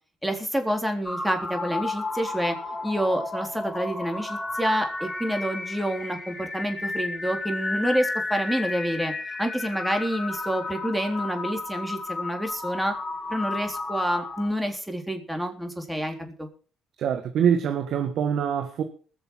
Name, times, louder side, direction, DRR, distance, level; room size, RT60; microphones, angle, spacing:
voice 1, 0.2-2.6 2.8-9.1 9.4-12.9 13.3-16.5, equal, 5° right, 3.7 m, -28 dB
sound 1, 1.0-14.5, left 2 dB, 25° left, 3.6 m, -32 dB
voice 2, 17.0-18.8, right 8 dB, 65° right, 1.5 m, -24 dB
20.5 x 7.0 x 5.7 m
supercardioid pair, 65°, 0 cm